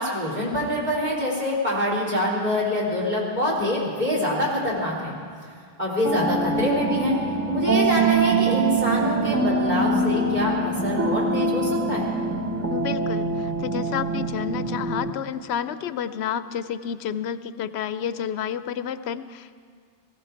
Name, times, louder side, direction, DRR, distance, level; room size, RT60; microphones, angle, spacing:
voice 1, 0.0-5.2 5.4-5.5 5.8-7.2 7.5-12.1, left 1 dB, 45° right, -5 dB, 3.7 m, -25 dB
sound 1, 6.0-15.1, right 3 dB, 15° right, 1.0 m, -24 dB
voice 2, 12.7-19.6, left 8 dB, 85° left, 12 dB, 0.8 m, -30 dB
19.0 x 15.5 x 4.5 m, 2.1 s
omnidirectional pair, 1.1 m